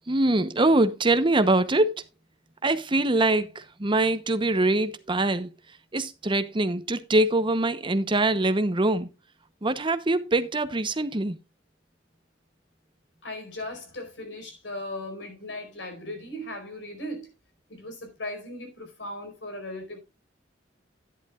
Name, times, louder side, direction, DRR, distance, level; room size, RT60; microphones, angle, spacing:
voice 1, 0.1-2.0 2.6-5.5 5.9-9.1 9.6-11.4, right 2 dB, 25° right, 0.8 m, -23 dB
voice 2, 13.2-17.3 17.7-20.0, left 1 dB, 75° left, 4.6 m, -37 dB
11.5 x 10.5 x 2.4 m
head